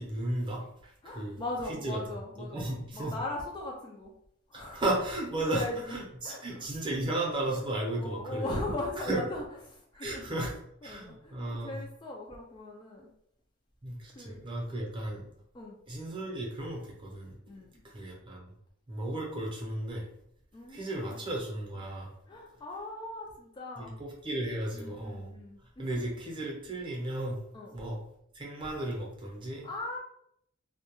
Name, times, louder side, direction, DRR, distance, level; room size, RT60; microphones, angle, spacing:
voice 1, 0.0-1.4 1.7-2.0 2.4-3.2 4.5-5.6 5.9-8.5 9.1-9.2 10.0-10.5 10.8-11.8 13.8-15.3 15.9-17.4 17.8-18.5 18.9-20.0 20.7-22.1 23.8-25.3 25.8-27.4 27.7-28.0 28.3-29.7, right 1 dB, 25° right, -2 dB, 0.6 m, -34 dB
voice 2, 1.0-4.1 4.5-4.8 5.3-6.7 7.4-7.6 8.0-10.5 10.8-13.1 14.1-14.5 15.5-15.8 17.5-17.8 20.5-21.2 22.3-24.0 24.7-26.1 27.5-27.8 29.6-30.0, left 2 dB, 25° left, 0 dB, 0.3 m, -39 dB
2.2 x 2.1 x 3.0 m, 0.72 s
head